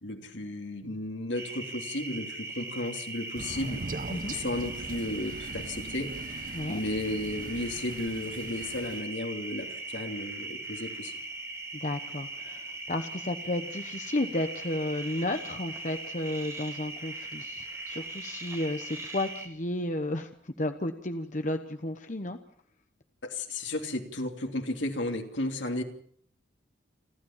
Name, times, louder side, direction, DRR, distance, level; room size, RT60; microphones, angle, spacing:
voice 1, 0.0-3.8 4.3-6.1 6.7-11.1 23.2-25.8, left 1 dB, 80° left, 4 dB, 2.9 m, -34 dB
sound 1, 1.3-19.5, right 2 dB, 15° right, 2.3 m, -40 dB
Crow, 3.3-9.0, right 3 dB, 45° right, 0.8 m, -41 dB
voice 2, 6.5-6.8 11.7-22.4, left 1 dB, 40° left, 7 dB, 1.0 m, -33 dB
29.5 x 12.5 x 7.3 m, 0.62 s
head